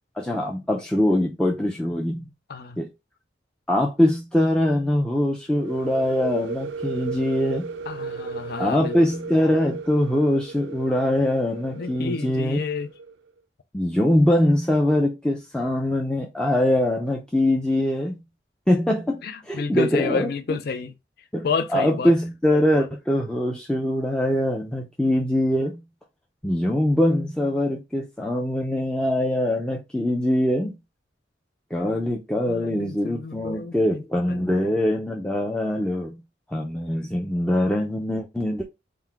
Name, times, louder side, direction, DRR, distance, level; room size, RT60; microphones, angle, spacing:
voice 1, 0.2-2.3 2.8-2.9 3.7-7.7 8.6-12.6 13.7-18.2 18.7-20.6 21.3-25.8 26.4-30.8 31.7-36.2 36.5-38.7, left 1 dB, 5° left, 0.5 m, -23 dB
sound 1, 5.5-13.1, right 4 dB, 90° right, 0.4 m, -35 dB
voice 2, 7.9-9.0 11.8-12.9 19.2-20.9 21.4-22.1 32.5-34.0 34.3-34.7, left 4 dB, 60° left, 0.4 m, -30 dB
3.8 x 2.2 x 4.5 m
head